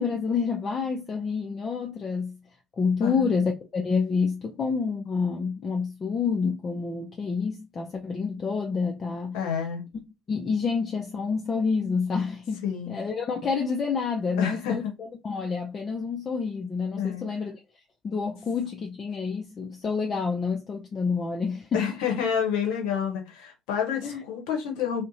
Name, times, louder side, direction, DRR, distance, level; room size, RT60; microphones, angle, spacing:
voice 1, 0.0-2.4 2.8-9.4 10.3-14.8 15.2-17.5 18.0-21.8 24.0-24.2, left 5 dB, 40° left, 0.4 m, -28 dB
voice 2, 9.3-9.8 12.6-13.0 14.4-14.9 17.0-17.2 21.7-25.1, left 7 dB, 70° left, 0.7 m, -29 dB
2.6 x 2.1 x 2.6 m
figure-of-eight pair, 55°, 0 cm